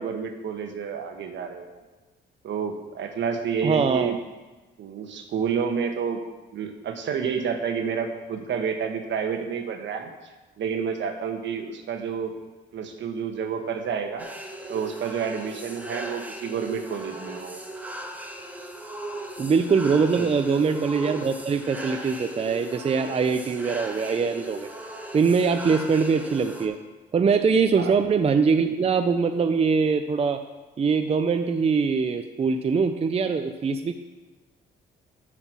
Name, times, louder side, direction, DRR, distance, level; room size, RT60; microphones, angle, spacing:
voice 1, 0.0-1.7 2.4-4.2 4.8-6.2 6.5-10.1 10.6-12.3 12.7-14.3 14.7-17.6 20.1-20.3 27.8-27.9, right 6 dB, 70° right, 6 dB, 1.2 m, -29 dB
voice 2, 3.6-4.1 19.4-24.7 25.1-26.8 27.1-30.4 30.8-33.9, right 5 dB, 30° right, 8 dB, 0.5 m, -22 dB
sound 1, 14.2-26.7, right 1 dB, 10° right, 1.1 m, -38 dB
7.9 x 5.8 x 6.1 m, 1.2 s
cardioid pair, 90°, 20 cm